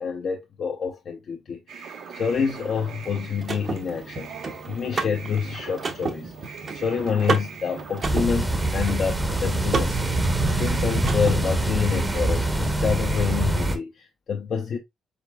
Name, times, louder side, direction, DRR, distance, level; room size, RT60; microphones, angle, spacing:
voice 1, 0.0-10.2 10.6-14.8, left 6 dB, 55° left, 0.7 m, -28 dB
sound 1, 1.7-13.8, right 6 dB, 80° right, 1.4 m, -41 dB
Car / Mechanisms, 2.7-11.7, right 4 dB, 45° right, 0.9 m, -33 dB
sound 2, 8.0-13.8, right 2 dB, 15° right, 0.8 m, -24 dB
4.9 x 3.7 x 2.2 m
cardioid pair, 90°, 0 cm